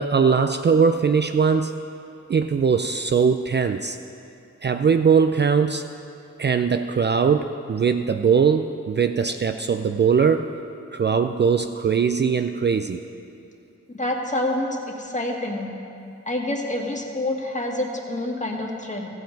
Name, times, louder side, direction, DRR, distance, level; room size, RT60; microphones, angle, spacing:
voice 1, 0.0-1.8 2.3-4.0 4.6-5.9 6.4-10.5 10.9-13.0, right 6 dB, 40° right, 7 dB, 0.4 m, -20 dB
voice 2, 13.9-15.7 16.3-19.1, left 1 dB, 25° left, 0 dB, 1.7 m, -27 dB
14.5 x 7.8 x 5.2 m, 2.6 s
cardioid pair, 55°, 29 cm